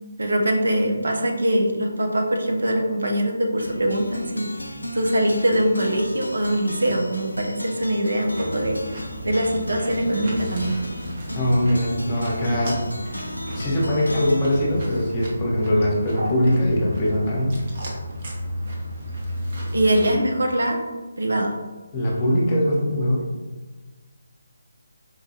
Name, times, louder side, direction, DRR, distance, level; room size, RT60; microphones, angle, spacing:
voice 1, 0.2-8.8 9.2-10.8 19.7-20.8 21.2-21.5, right 1 dB, 70° right, 2 dB, 0.6 m, -23 dB
sound 1, 3.6-15.9, left 1 dB, 90° left, 0.3 m, -35 dB
sound 2, 8.2-20.2, equal, 45° right, 0.8 m, -33 dB
voice 2, 11.3-12.8 13.5-17.6 21.9-23.3, equal, 25° left, -4 dB, 0.8 m, -22 dB
4.5 x 2.3 x 2.8 m, 1.3 s
figure-of-eight pair, 150°, 0 cm